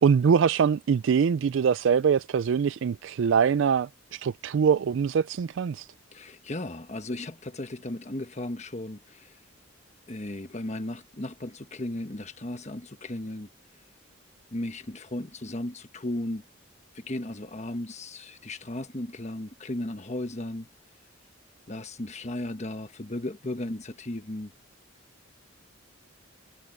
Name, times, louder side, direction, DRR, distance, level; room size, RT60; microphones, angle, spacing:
voice 1, 0.0-5.9, right 6 dB, 65° right, 0.3 m, -23 dB
voice 2, 6.1-9.4 10.1-13.5 14.5-16.4 16.9-20.7 21.7-24.5, left 1 dB, 35° left, 1.3 m, -35 dB
head